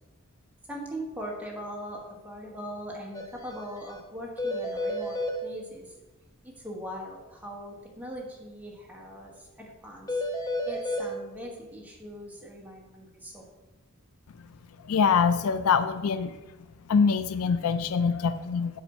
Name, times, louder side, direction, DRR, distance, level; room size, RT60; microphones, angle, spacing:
voice 1, 0.7-5.9 6.4-10.2 10.7-13.4, equal, 5° right, -2 dB, 1.4 m, -40 dB
sound 1, 3.1-3.3 3.5-3.6 3.9-4.0 4.4-5.4 10.1-11.1, left 1 dB, 15° left, 0.6 m, -30 dB
voice 2, 14.8-16.4 16.9-18.8, left 6 dB, 85° left, 12 dB, 0.4 m, -24 dB
7.1 x 5.1 x 4.4 m, 1.1 s
head